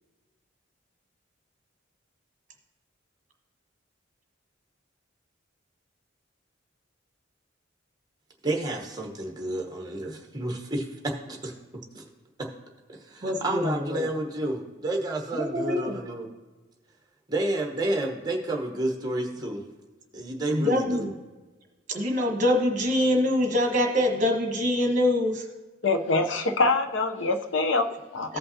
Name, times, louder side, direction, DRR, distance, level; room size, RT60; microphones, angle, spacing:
voice 1, 8.4-11.5 11.9-12.0 12.9-16.3 17.3-19.6 20.1-21.1, right 1 dB, 20° right, 1 dB, 1.0 m, -30 dB
voice 2, 13.2-14.1 15.3-16.0 20.5-21.1 21.9-25.5 28.3-28.4, left 1 dB, 40° right, 2 dB, 1.3 m, -24 dB
voice 3, 25.8-28.4, left 3 dB, 75° left, 7 dB, 0.7 m, -25 dB
15.0 x 5.5 x 2.8 m, 1.2 s
head